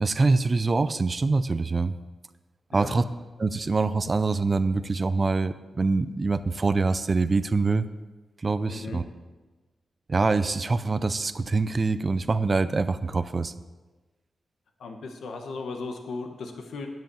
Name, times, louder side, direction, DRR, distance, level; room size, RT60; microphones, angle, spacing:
voice 1, 0.0-1.9 2.7-3.0 3.4-7.9 8.4-9.0 10.1-13.5, right 3 dB, 30° right, 12 dB, 0.4 m, -24 dB
voice 2, 8.7-9.0 14.8-16.9, left 3 dB, 85° left, 4 dB, 1.3 m, -36 dB
10.5 x 7.6 x 7.0 m, 1.2 s
wide cardioid pair, 135°, 0 cm